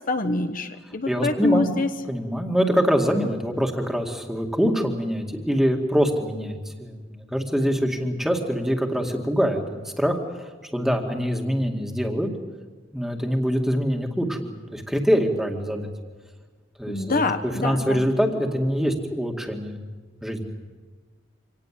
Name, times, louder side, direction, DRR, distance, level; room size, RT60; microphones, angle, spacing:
voice 1, 0.0-1.9 16.9-18.0, left 2 dB, 45° left, 8 dB, 1.1 m, -25 dB
voice 2, 1.1-1.7 2.1-10.2 10.6-12.3 12.9-15.9 16.8-19.8 20.2-20.5, equal, ahead, 3 dB, 2.1 m, -24 dB
25.5 x 18.5 x 7.6 m, 1.4 s
head